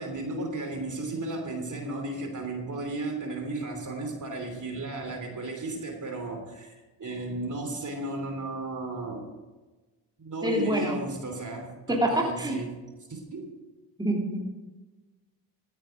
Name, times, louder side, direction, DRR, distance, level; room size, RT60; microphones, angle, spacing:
voice 1, 0.0-9.3 10.2-12.8 13.1-13.5, right 2 dB, 40° right, 4 dB, 3.1 m, -34 dB
voice 2, 10.4-11.0 11.9-12.6 14.0-14.5, right 1 dB, 10° right, -1 dB, 2.9 m, -26 dB
14.0 x 9.1 x 4.9 m, 1.2 s
supercardioid pair, 55°, 46 cm